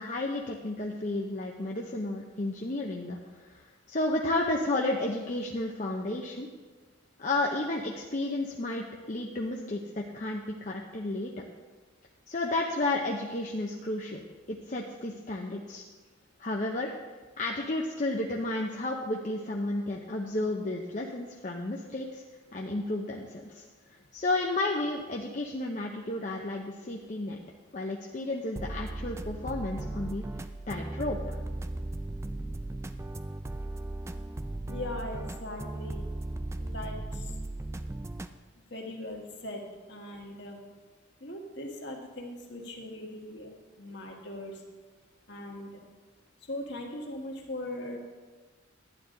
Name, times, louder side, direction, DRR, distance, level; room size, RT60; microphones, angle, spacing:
voice 1, 0.0-6.5 7.2-11.4 12.3-14.2 14.5-15.8 16.4-16.9 17.4-22.2 22.5-23.6 24.1-27.4 27.7-30.2 30.7-31.4, left 2 dB, 35° left, -1 dB, 0.7 m, -32 dB
sound 1, 28.6-38.3, right 2 dB, 15° right, 0.3 m, -37 dB
voice 2, 34.7-36.0 36.6-37.3 38.7-40.6 41.2-43.5 43.8-44.6 45.3-45.8 46.5-48.0, left 1 dB, 55° left, 0 dB, 1.7 m, -40 dB
11.5 x 9.8 x 3.9 m, 1.3 s
head